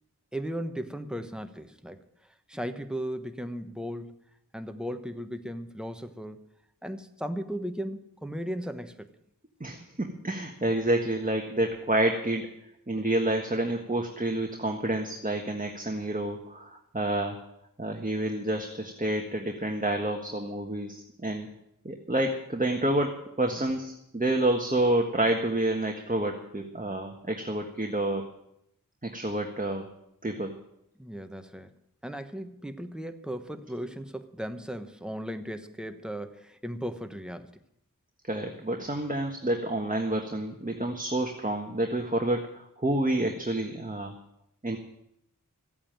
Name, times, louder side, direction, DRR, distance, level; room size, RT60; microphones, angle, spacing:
voice 1, 0.3-2.0 2.5-4.2 4.5-6.5 6.8-9.1 23.5-23.6 31.0-31.7 32.0-37.6, equal, ahead, 1.2 m, -36 dB
voice 2, 9.6-12.5 12.9-17.4 17.8-21.5 21.8-28.2 29.0-29.9 30.2-30.5 38.2-44.1 44.6-44.8, right 1 dB, 25° right, 1.5 m, -29 dB
15.0 x 8.7 x 8.9 m
wide cardioid pair, 60°, 33 cm